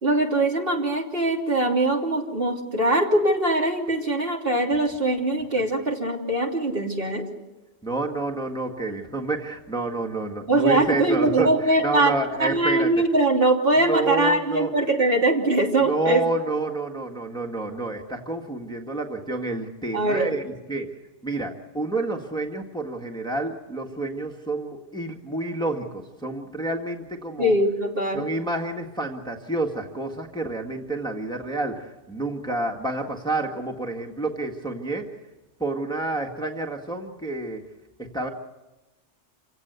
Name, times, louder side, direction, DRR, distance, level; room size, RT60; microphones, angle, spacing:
voice 1, 0.0-7.2 10.5-12.1 12.4-16.2 19.9-20.3 27.4-28.2, right 2 dB, 50° right, 0 dB, 3.3 m, -22 dB
voice 2, 7.8-12.9 13.9-14.7 15.8-20.9 21.2-27.5 28.1-35.1 35.6-37.6 38.0-38.3, right 2 dB, 5° left, 1 dB, 1.7 m, -29 dB
27.5 x 17.0 x 8.2 m, 1.1 s
omnidirectional pair, 1.3 m